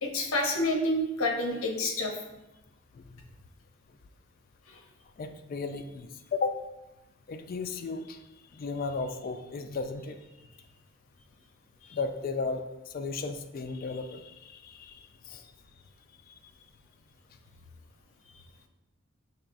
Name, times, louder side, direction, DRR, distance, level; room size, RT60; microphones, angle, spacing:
voice 1, 0.0-2.1, left 1 dB, 80° left, 2 dB, 0.7 m, -28 dB
voice 2, 5.2-6.6 7.3-8.2 8.5-10.2 11.9-15.0 15.3-15.5, left 4 dB, 45° left, 7 dB, 0.3 m, -35 dB
5.9 x 3.0 x 2.5 m, 1.0 s
head